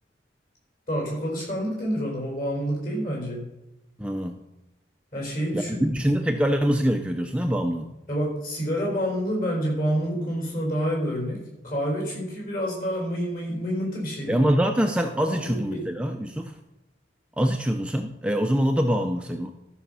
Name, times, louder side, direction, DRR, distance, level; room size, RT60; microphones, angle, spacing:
voice 1, 0.9-3.5 5.1-5.9 8.1-14.5 15.3-15.9, equal, 45° left, -1 dB, 4.7 m, -28 dB
voice 2, 4.0-4.4 5.5-7.9 14.3-16.6 17.4-19.5, equal, 5° right, 4 dB, 0.5 m, -24 dB
13.0 x 6.4 x 5.5 m, 0.97 s
head